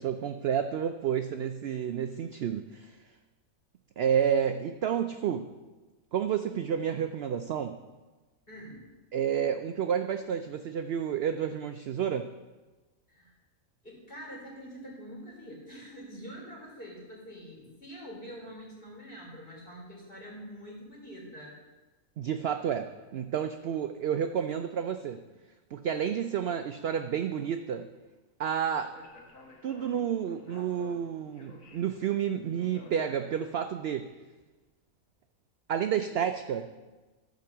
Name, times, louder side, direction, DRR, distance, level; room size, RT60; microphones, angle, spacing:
voice 1, 0.0-3.0 4.0-5.5 6.1-7.8 9.1-12.3 22.2-25.2 25.7-27.9 28.4-28.9 29.6-34.1 35.7-36.7, right 8 dB, 65° right, 7 dB, 0.6 m, -30 dB
voice 2, 8.5-8.9 13.1-13.3 13.8-21.5, equal, 40° left, -4 dB, 3.8 m, -45 dB
Speech, 28.7-33.8, left 2 dB, 65° left, 2.4 m, -53 dB
13.5 x 5.2 x 7.1 m, 1.2 s
omnidirectional pair, 1.5 m